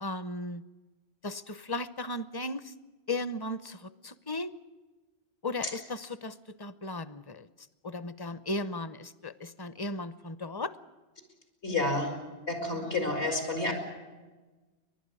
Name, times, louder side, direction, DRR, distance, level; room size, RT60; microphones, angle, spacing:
voice 1, 0.0-0.6 1.2-2.7 3.1-4.6 5.4-7.5 7.8-10.7, left 2 dB, 25° left, 15 dB, 0.6 m, -36 dB
voice 2, 11.6-12.2 12.5-13.7, left 2 dB, 80° left, 3 dB, 4.9 m, -29 dB
30.0 x 12.0 x 9.8 m, 1.2 s
omnidirectional pair, 1.1 m